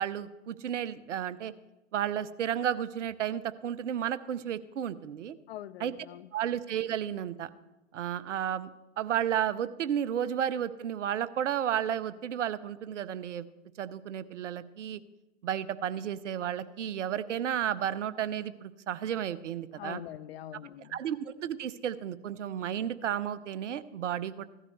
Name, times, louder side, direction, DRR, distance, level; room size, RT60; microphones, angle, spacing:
voice 1, 0.0-1.5 1.9-5.4 5.8-5.9 6.3-7.5 7.9-8.7 9.0-13.5 13.8-15.0 15.4-20.0 20.9-24.4, right 9 dB, 70° right, 0.7 m, -32 dB
voice 2, 5.5-6.3 19.8-21.0, left 12 dB, 55° left, 0.5 m, -43 dB
16.5 x 12.5 x 3.2 m
hypercardioid pair, 115°, 37 cm